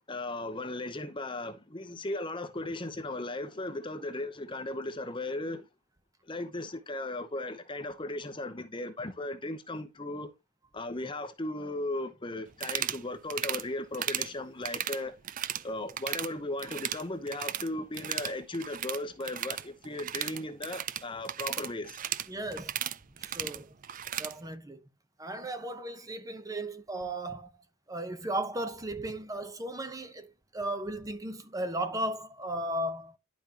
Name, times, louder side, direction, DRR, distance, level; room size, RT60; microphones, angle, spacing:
voice 1, 0.0-5.7 6.3-10.3 10.7-15.1 15.6-22.0, left 2 dB, 25° left, 0.8 m, -36 dB
sound 1, 12.5-13.0 13.3-13.6 13.9-14.3 14.6-15.6 15.9-16.3 16.6-17.7 17.9-24.3, right 11 dB, 40° right, 0.4 m, -35 dB
voice 2, 22.3-22.7 23.2-23.7 24.2-24.8 25.2-27.5 27.9-33.2, right 1 dB, 15° right, 0.8 m, -35 dB
11.0 x 5.3 x 2.9 m
head